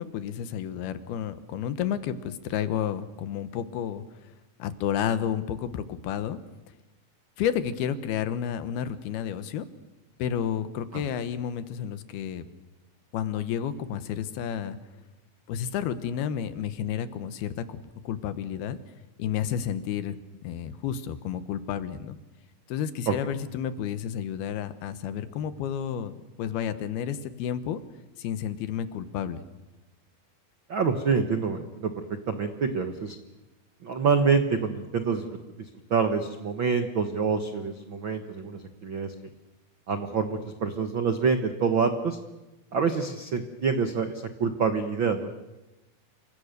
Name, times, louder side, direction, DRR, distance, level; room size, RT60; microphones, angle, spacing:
voice 1, 0.0-4.0 4.6-6.4 7.4-9.6 10.2-12.4 13.1-14.8 15.5-17.8 18.0-18.8 19.2-20.2 20.4-22.2 22.7-26.1 26.4-27.8 28.2-29.4, left 9 dB, 80° left, 12 dB, 3.1 m, -31 dB
voice 2, 30.7-33.2 33.8-35.3 35.6-39.1 39.9-42.2 42.7-45.3, right 5 dB, 85° right, 7 dB, 1.0 m, -26 dB
28.5 x 25.5 x 6.8 m, 1.0 s
omnidirectional pair, 4.4 m